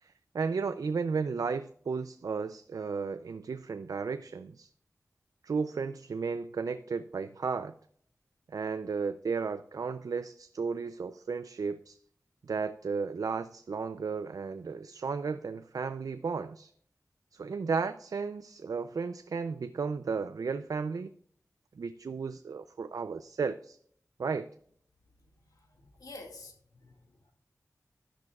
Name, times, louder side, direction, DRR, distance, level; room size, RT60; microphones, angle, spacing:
voice 1, 0.0-4.7 5.4-7.7 8.5-12.0 12.4-16.7 17.3-21.1 21.8-23.8 24.2-24.5, right 5 dB, 80° right, 0.4 m, -34 dB
voice 2, 25.4-27.2, left 2 dB, 90° left, 2.0 m, -50 dB
12.0 x 10.5 x 2.4 m
wide cardioid pair, 85°, 6 cm